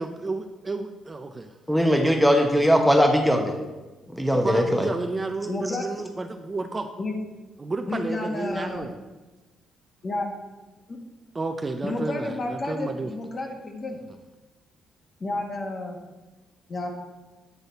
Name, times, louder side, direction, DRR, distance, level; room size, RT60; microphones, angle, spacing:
voice 1, 0.0-1.5 4.4-6.9 7.6-9.0 11.3-13.1, right 3 dB, 25° right, 6 dB, 0.4 m, -31 dB
voice 2, 1.7-3.5 4.1-4.9, equal, ahead, 3 dB, 0.9 m, -20 dB
voice 3, 5.5-6.0 7.0-7.2 7.9-8.9 10.0-10.3 10.9-11.0 11.8-14.0 15.2-16.0 16.7-16.9, left 2 dB, 40° left, 2 dB, 1.3 m, -31 dB
8.2 x 4.0 x 4.0 m, 1.2 s
cardioid pair, 90°, 0 cm